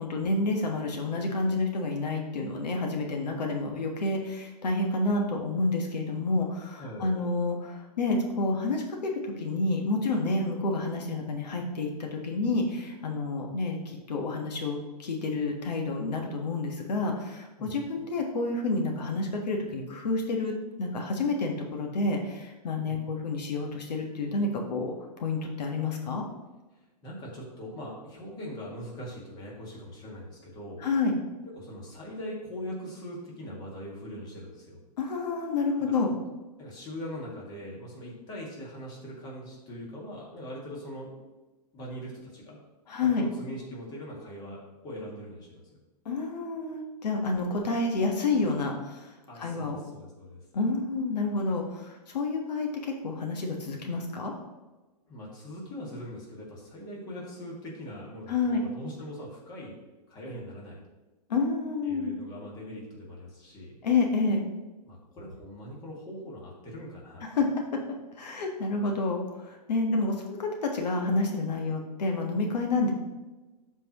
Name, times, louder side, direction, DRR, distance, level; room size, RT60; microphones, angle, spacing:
voice 1, 0.0-20.5 20.8-26.2 30.8-31.1 35.0-36.1 42.9-43.2 46.0-49.1 49.4-49.8 50.5-54.3 58.3-58.6 61.3-62.1 63.8-64.4 67.3-67.5 68.2-72.9, left 3 dB, 80° left, 2 dB, 1.4 m, -29 dB
voice 2, 6.8-7.2 17.6-18.1 22.9-23.0 27.0-30.8 31.6-34.8 36.6-41.2 41.7-42.6 43.0-45.8 49.3-50.4 55.1-59.8 60.1-60.8 61.8-63.8 64.8-67.2, equal, 20° left, -3 dB, 2.0 m, -41 dB
12.5 x 4.5 x 3.0 m, 1.2 s
hypercardioid pair, 155°, 21 cm